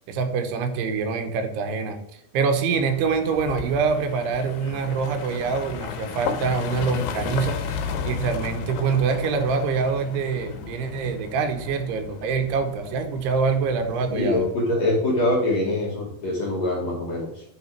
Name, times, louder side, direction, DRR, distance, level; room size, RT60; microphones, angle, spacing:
voice 1, 0.1-14.5, right 5 dB, 85° right, 6 dB, 3.0 m, -25 dB
sound 1, 2.7-14.6, left 6 dB, 85° left, 2.8 m, -34 dB
voice 2, 14.1-17.4, left 1 dB, 60° left, -4 dB, 1.9 m, -24 dB
9.8 x 3.3 x 4.5 m, 0.79 s
omnidirectional pair, 4.6 m